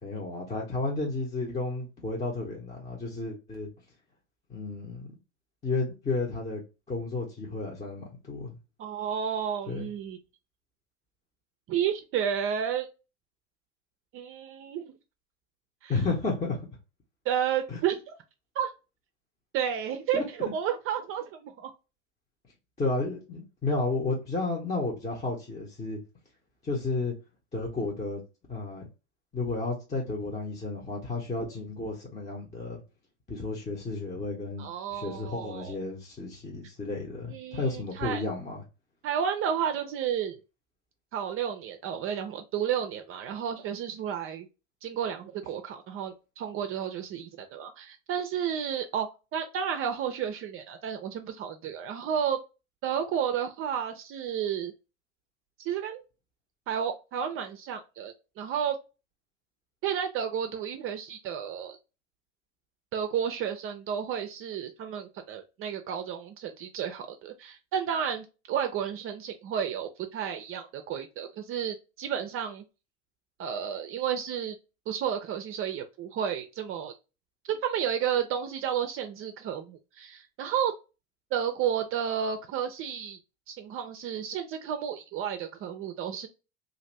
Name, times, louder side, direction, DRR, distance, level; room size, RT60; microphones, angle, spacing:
voice 1, 0.0-3.7 4.5-5.2 5.6-6.6 6.9-8.6 9.7-9.9 15.9-16.6 17.7-17.8 20.1-20.2 22.8-26.0 26.6-27.1 27.5-28.2 28.5-28.9 29.3-32.8 33.3-34.7 34.9-38.6, left 3 dB, 20° left, 0.8 m, -32 dB
voice 2, 8.8-10.2 11.7-12.9 14.1-14.9 15.8-15.9 17.3-18.1 18.6-18.7 19.5-21.7 34.6-35.8 37.3-38.2 39.0-40.4 41.1-44.5 44.8-52.4 52.8-54.7 55.7-56.0 56.7-58.8 59.8-61.8 62.9-72.6 73.4-74.6 74.9-76.9 77.5-80.7 81.3-83.2 83.5-86.3, right 8 dB, 40° right, 0.5 m, -32 dB
2.6 x 2.5 x 3.1 m
hypercardioid pair, 95°, 34 cm